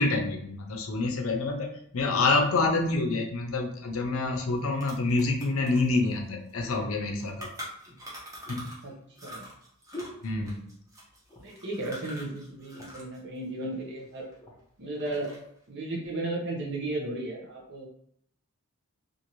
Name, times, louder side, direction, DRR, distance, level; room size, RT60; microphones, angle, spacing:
voice 1, 0.0-7.5 8.5-8.6 10.2-10.6, left 3 dB, 75° left, 2 dB, 0.6 m, -27 dB
sound 1, 4.1-4.2 4.5-8.9 9.1-13.2 13.4-14.6 14.9-15.6, equal, 15° right, 0.8 m, -45 dB
sound 2, 7.8-11.0 11.2-11.7 12.1-12.2 12.5-13.2 13.9-14.6 15.2-15.4, left 1 dB, 20° left, 0.7 m, -47 dB
voice 2, 11.4-14.3 14.8-15.3 15.7-17.9, right 2 dB, 55° right, 0 dB, 0.8 m, -34 dB
2.6 x 2.6 x 3.0 m, 0.68 s
head